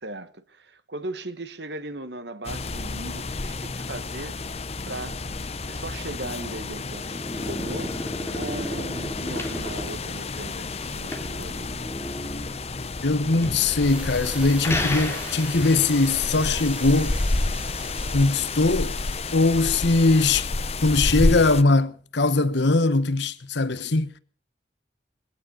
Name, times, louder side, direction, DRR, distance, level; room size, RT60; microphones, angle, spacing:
voice 1, 0.0-4.4 4.9-5.2 5.6-11.7, right 2 dB, 60° right, 1.4 m, -38 dB
sound 1, 2.4-21.6, left 3 dB, 35° left, 0.8 m, -30 dB
sound 2, 6.7-15.8, left 1 dB, 15° left, 2.9 m, -34 dB
sound 3, 11.6-21.7, equal, 5° right, 2.6 m, -42 dB
voice 2, 13.0-17.2 18.1-19.0 19.3-20.5 20.8-24.1, left 3 dB, 65° left, 1.1 m, -21 dB
20.5 x 16.5 x 4.0 m
head